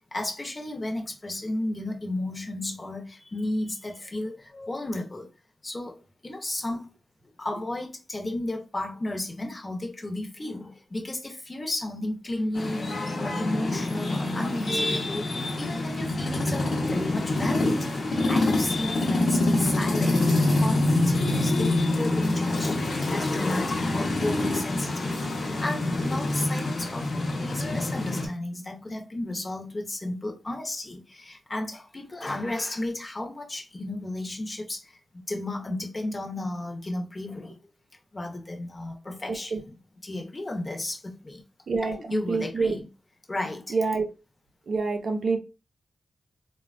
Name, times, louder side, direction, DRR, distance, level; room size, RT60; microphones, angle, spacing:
voice 1, 0.1-5.3 5.6-6.9 7.4-12.9 13.2-25.1 25.6-35.0 35.3-37.6 38.1-39.8 40.0-41.4 41.8-42.9 43.3-43.8, left 1 dB, 30° left, 0.7 m, -33 dB
sound 1, 12.6-28.3, left 2 dB, 65° left, 0.8 m, -26 dB
voice 2, 41.7-42.8 43.7-44.1 44.7-45.4, right 4 dB, 65° right, 0.6 m, -26 dB
3.2 x 2.1 x 2.4 m
cardioid pair, 70°, 0 cm